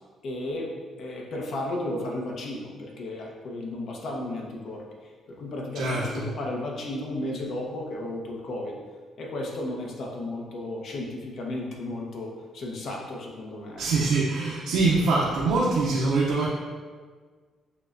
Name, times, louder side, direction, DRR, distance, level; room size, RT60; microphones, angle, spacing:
voice 1, 0.2-8.8 9.2-13.9, left 1 dB, 65° left, -1 dB, 0.7 m, -34 dB
voice 2, 5.7-6.3 13.8-16.5, right 3 dB, 90° right, -5 dB, 0.5 m, -24 dB
6.5 x 2.2 x 2.5 m, 1.5 s
cardioid pair, 90°, 0 cm